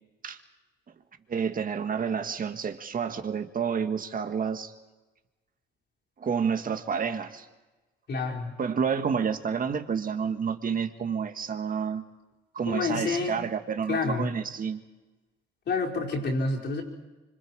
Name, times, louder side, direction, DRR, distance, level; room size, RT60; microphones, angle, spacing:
voice 1, 1.3-4.7 6.2-7.5 8.6-12.0 12.5-14.8, right 6 dB, 45° right, 7 dB, 1.7 m, -29 dB
voice 2, 8.1-8.5 12.7-13.3 13.9-14.3 15.6-16.8, left 3 dB, 60° left, -2 dB, 5.2 m, -28 dB
25.5 x 25.5 x 4.8 m, 1.2 s
cardioid pair, 90°, 20 cm